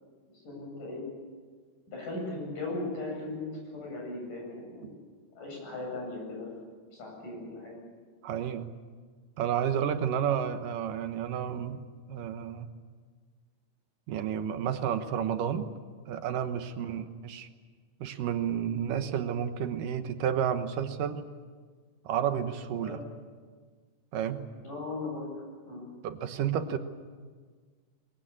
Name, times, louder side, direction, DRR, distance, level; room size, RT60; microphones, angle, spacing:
voice 1, 0.3-1.0 1.9-4.9 5.4-6.5 6.9-7.7 16.8-16.9 22.8-23.0 24.6-25.2 25.7-25.9, left 2 dB, 65° left, -1 dB, 9.5 m, -38 dB
voice 2, 8.2-8.7 9.4-11.8 12.1-12.7 14.1-15.7 16.1-17.5 18.0-21.2 22.1-23.0 24.1-24.4 26.0-26.8, right 9 dB, 75° right, 8 dB, 2.7 m, -31 dB
22.5 x 22.5 x 8.7 m, 1.5 s
omnidirectional pair, 4.0 m